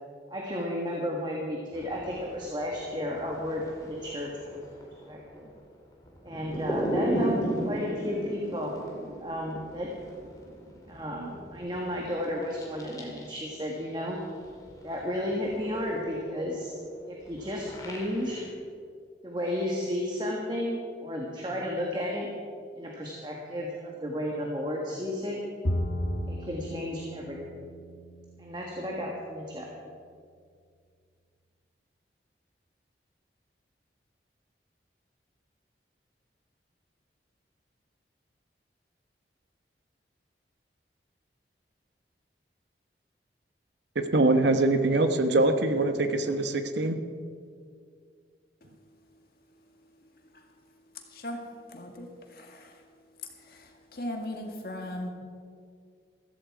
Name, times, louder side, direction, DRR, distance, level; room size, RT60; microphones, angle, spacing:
voice 1, 0.3-4.6 5.1-5.5 6.2-7.4 7.6-8.7 9.2-9.9 10.9-14.2 14.8-16.7 17.1-18.4 19.2-22.3 22.7-25.4 26.3-27.4 28.4-29.9, left 1 dB, 25° right, -1 dB, 1.5 m, -33 dB
sound 1, 1.7-13.9 14.1-18.5, right 1 dB, 20° left, 2.3 m, -37 dB
Bowed string instrument, 25.6-29.0, equal, 85° left, 1.4 m, -34 dB
voice 2, 43.9-47.0, right 2 dB, 80° right, 8 dB, 1.0 m, -23 dB
voice 3, 51.7-52.1 52.4-52.6 53.9-55.1, left 1 dB, 55° left, 3 dB, 2.0 m, -36 dB
15.0 x 14.5 x 4.8 m, 2.2 s
head